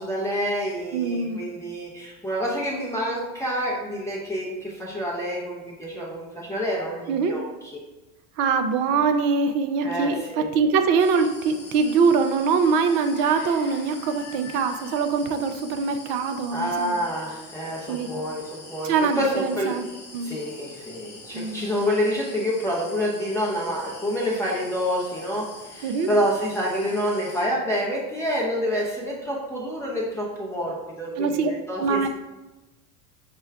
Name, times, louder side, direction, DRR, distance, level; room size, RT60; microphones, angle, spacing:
voice 1, 0.0-7.7 9.8-10.5 16.5-19.8 20.2-32.1, equal, 5° left, -6 dB, 0.6 m, -28 dB
voice 2, 0.9-1.4 7.1-7.3 8.4-17.0 17.9-18.1 18.8-19.8 20.1-20.4 21.3-21.7 25.8-26.1 31.2-31.5 31.8-32.1, right 5 dB, 45° right, 7 dB, 0.5 m, -23 dB
sound 1, 11.0-27.5, left 2 dB, 20° left, 1.0 m, -44 dB
5.9 x 2.2 x 3.3 m, 1.1 s
hypercardioid pair, 80°, 48 cm